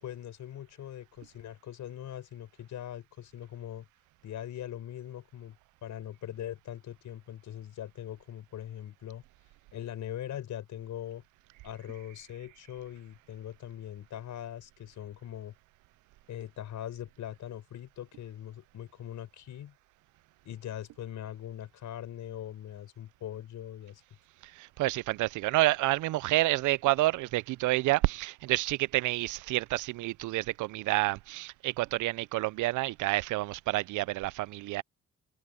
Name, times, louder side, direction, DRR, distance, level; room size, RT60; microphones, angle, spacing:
voice 1, 0.0-3.9 4.2-5.6 5.8-9.2 9.7-11.2 11.6-15.5 16.3-19.7 20.4-24.0, left 11 dB, 75° left, 5.6 m, -41 dB
voice 2, 24.6-34.8, right 18 dB, 80° right, 0.5 m, -29 dB
cardioid pair, 90°, 30 cm